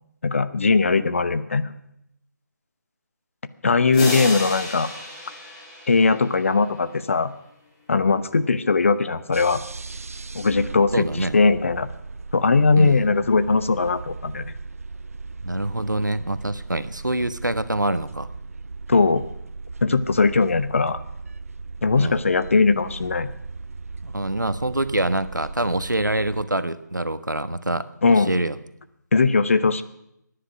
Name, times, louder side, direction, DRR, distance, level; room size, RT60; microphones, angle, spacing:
voice 1, 0.2-1.7 3.6-4.9 5.9-7.3 7.9-9.6 10.3-11.9 12.3-14.5 18.9-19.2 19.8-21.0 21.8-23.3 28.0-28.3 29.1-29.8, left 4 dB, 45° left, 13 dB, 0.9 m, -20 dB
sound 1, 3.9-6.6, left 1 dB, 20° left, 3.9 m, -32 dB
sound 2, 9.3-26.5, right 3 dB, 50° right, 0.8 m, -37 dB
voice 2, 10.9-11.4 12.7-13.1 15.4-18.3 22.0-22.2 24.0-28.6, right 1 dB, 85° right, 12 dB, 1.2 m, -25 dB
22.5 x 10.0 x 6.0 m, 0.79 s
figure-of-eight pair, 150°, 10 cm